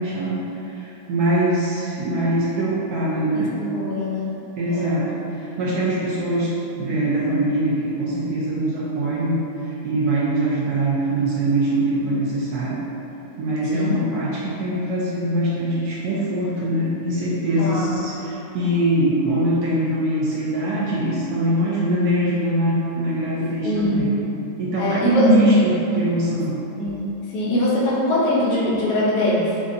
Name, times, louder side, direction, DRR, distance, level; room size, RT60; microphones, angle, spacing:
voice 1, 0.0-3.5 4.6-6.5 6.8-12.8 13.4-24.1 24.6-26.5, right 1 dB, 70° right, -7 dB, 1.0 m, -22 dB
voice 2, 3.3-4.3 4.7-4.9 13.7-14.0 17.6-18.0 23.6-24.1 24.8-25.3 26.8-27.0 27.3-29.6, left 1 dB, 70° left, -6 dB, 1.3 m, -22 dB
4.5 x 2.5 x 2.6 m, 3.0 s
omnidirectional pair, 2.0 m